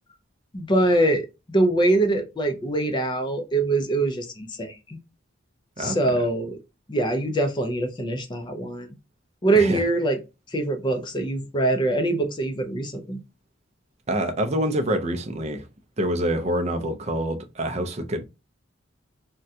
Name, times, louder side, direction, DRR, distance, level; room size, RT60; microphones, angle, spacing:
voice 1, 0.5-5.0 5.8-6.6 6.9-8.9 9.4-10.2 10.5-13.2, right 2 dB, 25° left, 0.4 m, -23 dB
voice 2, 5.8-6.2 9.5-9.8 14.1-15.7 16.0-18.2, right 1 dB, 35° right, 0.5 m, -26 dB
3.6 x 2.2 x 2.6 m
head